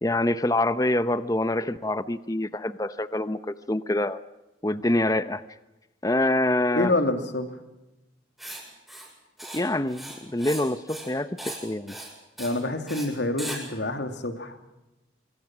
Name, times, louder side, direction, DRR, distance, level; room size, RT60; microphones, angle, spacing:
voice 1, 0.0-4.2 4.6-5.4 6.0-6.9 9.5-12.0, left 1 dB, 20° left, 13 dB, 0.8 m, -26 dB
voice 2, 6.6-7.5 12.4-14.6, left 2 dB, 75° left, 7 dB, 2.8 m, -27 dB
Writing, 8.4-8.6 8.9-9.1 9.4-9.6 9.9-10.6 10.9-11.1 11.4-11.6 11.9-12.1 12.4-12.6 12.9-13.1 13.4-13.6, right 1 dB, ahead, 7.2 m, -38 dB
25.5 x 24.5 x 6.2 m, 0.99 s
head